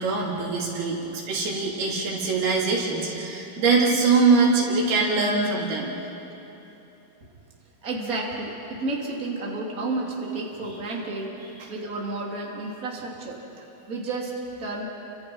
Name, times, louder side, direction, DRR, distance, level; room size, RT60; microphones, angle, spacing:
voice 1, 0.0-5.9, right 4 dB, 90° right, -3 dB, 5.1 m, -23 dB
voice 2, 7.8-11.3 11.7-13.4 13.9-14.3 14.6-14.9, right 2 dB, 25° right, -2 dB, 3.3 m, -31 dB
29.5 x 26.0 x 5.6 m, 3.0 s
omnidirectional pair, 4.3 m